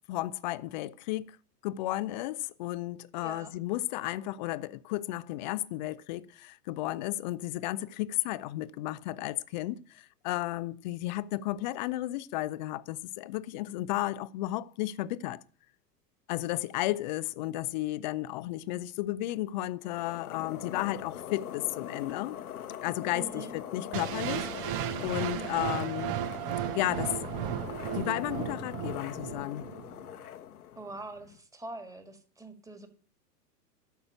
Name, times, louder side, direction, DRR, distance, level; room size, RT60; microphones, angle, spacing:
voice 1, 0.1-1.3 1.6-15.4 16.3-22.4 22.8-24.8 25.0-26.2 26.7-27.3 27.9-29.7, left 16 dB, 30° left, 0.5 m, -33 dB
voice 2, 3.2-3.5 23.1-23.5 30.7-32.9, right 2 dB, 5° right, 1.8 m, -43 dB
sound 1, 19.8-31.4, left 10 dB, 65° left, 1.1 m, -42 dB
sound 2, 23.9-29.9, right 12 dB, 35° right, 0.8 m, -35 dB
12.5 x 6.3 x 8.8 m
figure-of-eight pair, 95°, 49 cm